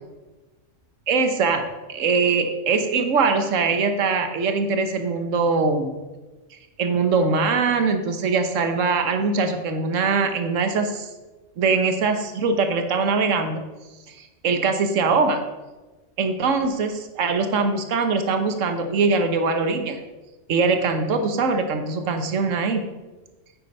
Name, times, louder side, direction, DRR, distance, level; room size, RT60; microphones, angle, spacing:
voice 1, 1.1-1.6 1.9-5.9 6.8-11.1 11.6-13.6 14.1-15.4 16.2-20.0 20.5-22.9, right 4 dB, 85° right, 7 dB, 1.3 m, -22 dB
9.6 x 7.7 x 5.4 m, 1.2 s
omnidirectional pair, 1.3 m